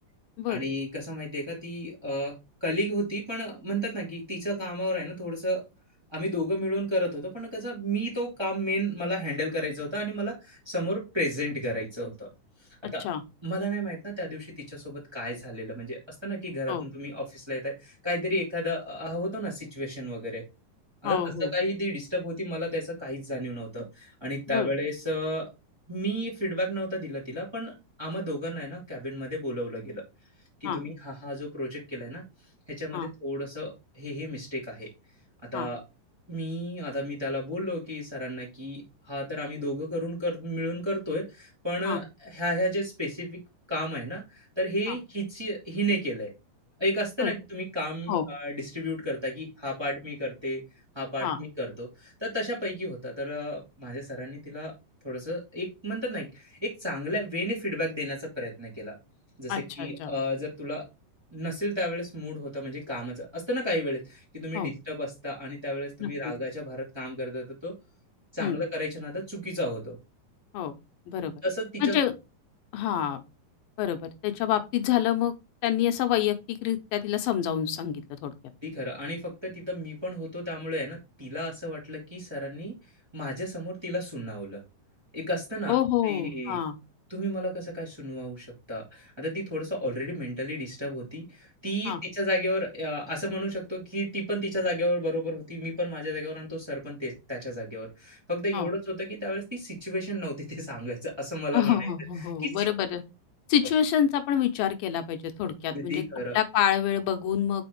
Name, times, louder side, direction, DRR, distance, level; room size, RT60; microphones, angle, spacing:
voice 1, 0.5-5.6 6.1-12.3 12.9-13.0 13.4-20.4 21.0-25.5 25.9-30.0 30.6-32.2 32.7-34.9 35.5-35.8 36.3-43.4 43.7-46.3 46.8-50.6 50.9-54.7 55.0-59.0 59.4-60.8 61.3-67.7 68.3-70.0 71.4-71.9 78.6-82.7 83.1-84.6 85.1-85.7 86.0-86.6 87.1-101.9 102.2-102.6 105.7-106.4, equal, 10° right, 2.1 m, -32 dB
voice 2, 12.8-13.2 16.7-16.9 21.0-21.5 24.5-24.7 30.6-30.8 32.9-33.1 35.5-35.7 41.9-42.0 44.9-45.0 47.2-47.3 48.1-48.3 51.2-51.4 59.5-60.1 64.5-64.7 66.0-66.1 68.4-68.6 70.5-70.7 71.1-71.4 71.8-72.1 72.7-73.2 73.8-75.3 75.6-78.3 85.7-86.8 91.9-92.0 98.5-98.7 101.5-103.0 103.5-106.0 106.3-107.7, left 10 dB, 85° left, 2.5 m, -27 dB
6.1 x 4.3 x 4.6 m
omnidirectional pair, 3.9 m